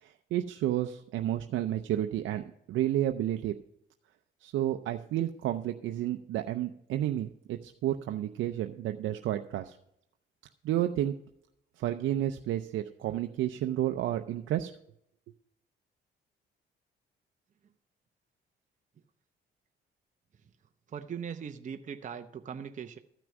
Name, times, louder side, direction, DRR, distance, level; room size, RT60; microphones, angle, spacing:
voice 1, 0.0-3.5 4.4-9.8 10.6-11.1 11.8-14.7, right 12 dB, 80° right, 6 dB, 0.6 m, -31 dB
voice 2, 20.9-23.0, right 7 dB, 40° right, 6 dB, 0.7 m, -40 dB
13.5 x 6.1 x 6.0 m, 0.76 s
cardioid pair, 90°, 20 cm